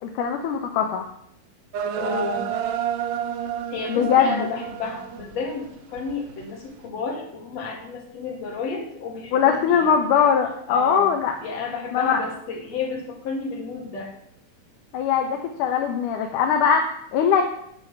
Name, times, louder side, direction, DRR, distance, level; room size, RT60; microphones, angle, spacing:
voice 1, 0.0-1.1 3.9-4.5 9.3-11.4 11.9-12.2 14.9-17.4, left 7 dB, 75° left, 4 dB, 2.4 m, -21 dB
sound 1, 1.7-5.5 6.0-6.4, right 8 dB, 70° right, 1.8 m, -30 dB
voice 2, 1.9-2.5 3.7-9.9 10.7-11.1 11.4-14.1, left 4 dB, 50° left, 0 dB, 3.2 m, -31 dB
8.9 x 6.3 x 8.4 m, 0.72 s
omnidirectional pair, 3.9 m